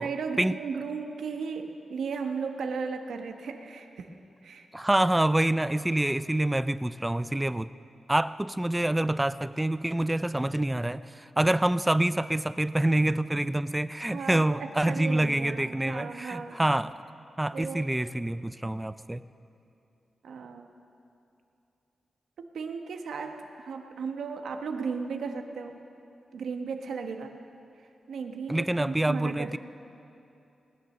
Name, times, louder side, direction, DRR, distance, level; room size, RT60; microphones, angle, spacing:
voice 1, 0.0-4.7 14.1-16.6 17.5-17.9 20.2-20.7 22.4-25.8 26.3-27.3 28.1-29.6, right 5 dB, 90° right, 5 dB, 1.0 m, -35 dB
voice 2, 4.7-7.7 8.1-17.0 17.4-19.2 28.5-29.6, right 1 dB, 10° right, 15 dB, 0.3 m, -26 dB
19.0 x 9.7 x 6.5 m, 2.8 s
wide cardioid pair, 110°, 0 cm